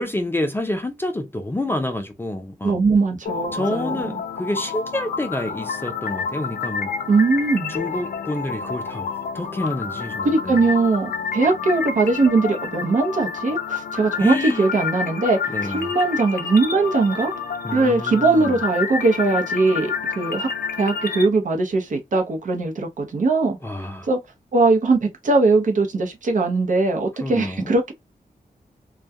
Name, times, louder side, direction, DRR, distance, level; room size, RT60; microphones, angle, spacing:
voice 1, 0.0-2.8 3.5-6.9 7.7-9.1 9.3-10.6 14.2-14.7 15.5-15.9 17.6-18.5 23.6-24.1 27.2-27.7, left 1 dB, 15° left, 0.3 m, -28 dB
voice 2, 2.6-4.1 7.1-7.8 10.2-17.3 17.7-20.5 20.8-23.6 24.0-24.2 24.5-27.9, right 3 dB, 60° right, 0.7 m, -20 dB
sound 1, 3.3-21.3, left 6 dB, 80° left, 0.5 m, -29 dB
2.3 x 2.2 x 2.5 m
wide cardioid pair, 170°, 15 cm